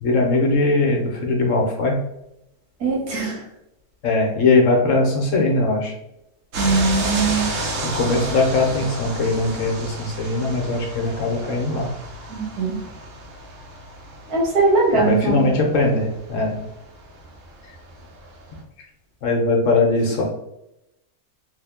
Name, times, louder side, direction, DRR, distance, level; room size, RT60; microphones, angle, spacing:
voice 1, 0.0-2.0 4.0-5.9 7.8-11.9 14.9-16.6 19.2-20.2, left 2 dB, 60° left, 0 dB, 1.1 m, -20 dB
voice 2, 2.8-3.5 6.6-7.5 12.3-12.8 14.3-15.4, right 3 dB, 85° right, -2 dB, 1.6 m, -20 dB
sound 1, 6.5-18.6, right 2 dB, 65° right, 1.1 m, -32 dB
3.5 x 2.2 x 3.4 m, 0.85 s
omnidirectional pair, 1.6 m